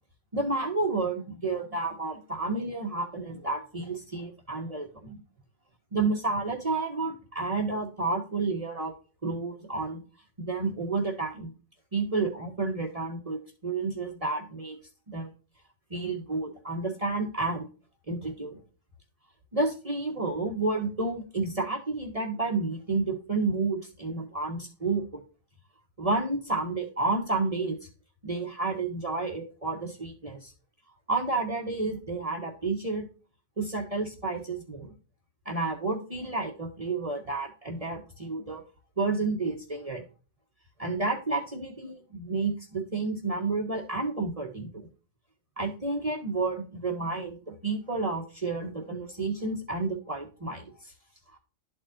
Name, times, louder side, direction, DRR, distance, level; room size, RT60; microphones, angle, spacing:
voice 1, 0.3-5.2 5.9-8.9 9.2-10.0 10.4-11.5 11.9-14.8 15.1-15.3 15.9-17.7 18.1-18.6 19.5-25.0 26.0-27.8 28.2-30.5 31.1-33.1 33.6-34.9 35.4-38.6 39.0-40.0 40.8-44.9 45.6-50.9, right 3 dB, 30° right, -1 dB, 1.3 m, -30 dB
12.5 x 4.3 x 2.5 m, 0.36 s
omnidirectional pair, 1.3 m